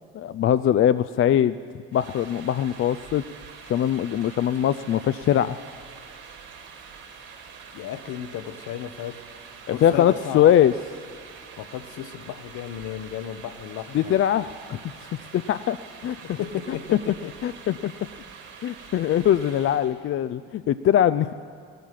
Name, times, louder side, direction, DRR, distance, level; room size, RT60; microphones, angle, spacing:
voice 1, 0.2-1.6 1.9-3.2 3.7-5.6 9.7-10.7 13.9-14.8 15.3-15.8 16.0-16.4 17.4-17.9 18.6-21.3, left 10 dB, 40° left, 12 dB, 0.5 m, -21 dB
sound 1, 1.9-20.0, right 6 dB, 75° right, 4.1 m, -45 dB
voice 2, 7.7-9.2 9.7-10.5 11.6-14.1 16.2-17.3, left 10 dB, 60° left, 12 dB, 1.0 m, -34 dB
17.0 x 13.0 x 5.8 m, 2.2 s
hypercardioid pair, 65°, 34 cm